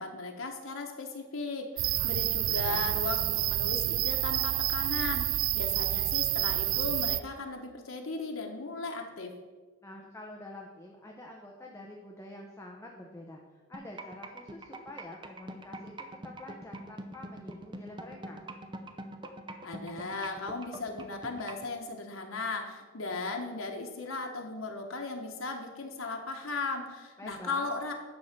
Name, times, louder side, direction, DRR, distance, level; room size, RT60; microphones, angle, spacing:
voice 1, 0.0-9.3 19.6-27.9, left 3 dB, 85° left, 3 dB, 1.2 m, -37 dB
sound 1, 1.8-7.2, right 15 dB, 80° right, 0.3 m, -29 dB
voice 2, 2.1-3.0 9.8-18.4 27.2-27.7, left 1 dB, 15° left, 0 dB, 0.8 m, -47 dB
sound 2, 13.7-21.7, right 2 dB, 25° right, 0.6 m, -43 dB
10.5 x 3.7 x 6.7 m, 1.4 s
head